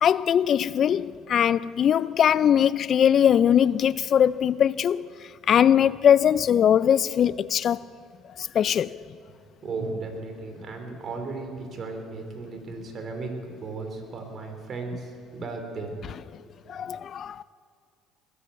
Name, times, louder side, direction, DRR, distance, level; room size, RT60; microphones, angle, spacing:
voice 1, 0.0-5.1 5.5-7.8 8.4-8.9 16.7-17.4, left 9 dB, 50° left, 0.3 m, -21 dB
voice 2, 9.6-15.9, right 3 dB, 45° right, 3.5 m, -35 dB
20.5 x 8.5 x 7.8 m
supercardioid pair, 75°, 0 cm